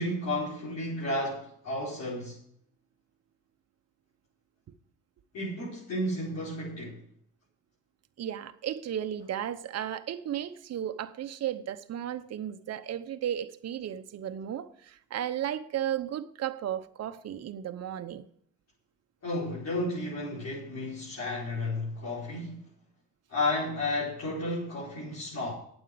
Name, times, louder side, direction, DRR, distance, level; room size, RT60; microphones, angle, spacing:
voice 1, 0.0-2.4 5.3-7.0 19.2-22.7 23.3-25.5, left 1 dB, 60° left, 4.7 m, -32 dB
voice 2, 8.2-18.2, right 10 dB, 55° right, 0.9 m, -34 dB
9.0 x 8.0 x 7.8 m
cardioid pair, 90°, 30 cm